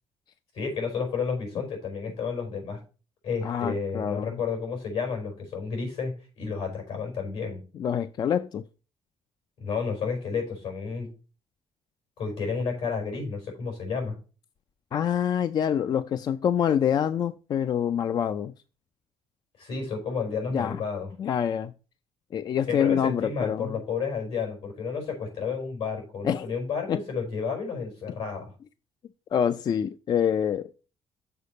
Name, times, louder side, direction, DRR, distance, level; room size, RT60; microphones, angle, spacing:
voice 1, 0.5-2.8 3.2-7.6 9.6-11.1 12.2-14.1 19.6-21.1 22.7-28.5, left 5 dB, 80° left, 5.0 m, -31 dB
voice 2, 3.4-4.4 7.7-8.6 14.9-18.5 20.5-20.8 21.2-21.7 22.3-23.8 26.2-26.5 26.9-27.0 29.3-30.7, left 8 dB, 40° left, 0.4 m, -26 dB
6.8 x 4.9 x 6.5 m
cardioid pair, 160°, 10 cm